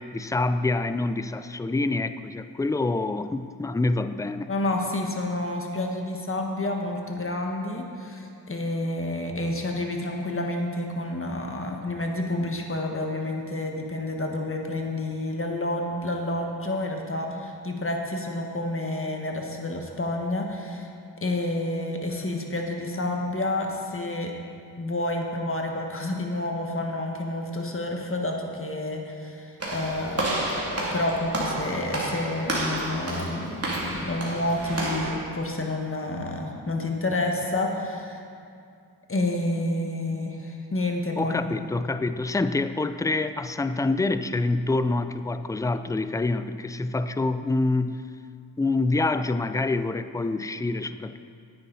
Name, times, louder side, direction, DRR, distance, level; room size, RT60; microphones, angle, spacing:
voice 1, 0.0-4.5 41.2-48.0 48.6-51.2, left 2 dB, 10° left, 11 dB, 0.3 m, -26 dB
voice 2, 4.5-20.9 21.2-24.3 24.8-38.2 39.1-41.6, left 1 dB, 30° left, 1 dB, 1.5 m, -29 dB
Walk footsteps / Slam, 29.6-35.2, right 1 dB, 35° right, 2.8 m, -30 dB
9.7 x 9.3 x 4.1 m, 2.4 s
cardioid pair, 50°, 43 cm